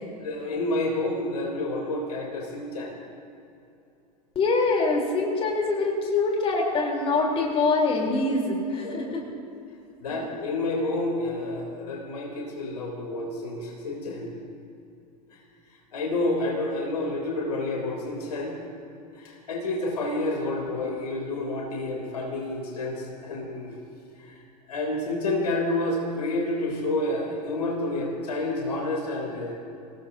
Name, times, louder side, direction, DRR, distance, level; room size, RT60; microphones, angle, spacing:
voice 1, 0.2-2.9 8.8-9.2 10.0-14.3 15.3-15.4 15.9-18.5 19.1-23.8 24.2-24.4 24.7-29.5, left 2 dB, 70° left, -1 dB, 3.5 m, -29 dB
voice 2, 4.4-9.2, left 3 dB, 30° left, 0 dB, 3.8 m, -24 dB
27.5 x 18.5 x 2.8 m, 2.7 s
figure-of-eight pair, 85°, 20 cm